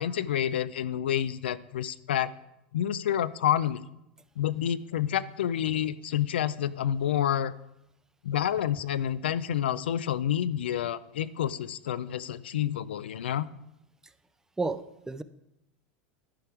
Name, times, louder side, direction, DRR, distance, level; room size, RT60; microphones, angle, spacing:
voice 1, 0.0-2.3 2.7-3.8 4.4-7.5 8.2-13.5, left 10 dB, 85° left, 16 dB, 0.4 m, -28 dB
voice 2, 14.6-15.2, right 3 dB, 10° right, 13 dB, 0.4 m, -32 dB
11.5 x 4.5 x 4.9 m, 0.84 s
hypercardioid pair, 110°, 6 cm